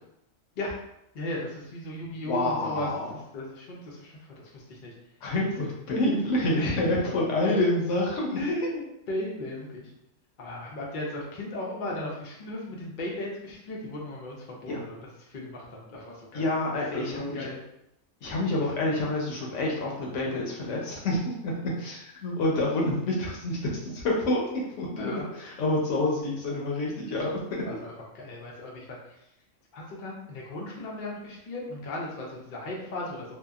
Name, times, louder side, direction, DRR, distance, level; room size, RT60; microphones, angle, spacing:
voice 1, 1.1-2.9 3.3-4.1 4.5-4.9 6.5-6.8 7.4-7.7 8.4-8.8 9.1-9.8 10.4-15.0 15.3-17.6 25.0-25.2 27.7-27.9 28.2-29.0 29.7-33.2, left 1 dB, 55° left, -2 dB, 0.6 m, -36 dB
voice 2, 2.2-3.2 5.2-8.6 14.7-14.8 16.3-17.5 18.2-27.6, left 1 dB, 70° left, -2 dB, 0.9 m, -28 dB
2.7 x 2.2 x 2.3 m, 0.82 s
omnidirectional pair, 1.4 m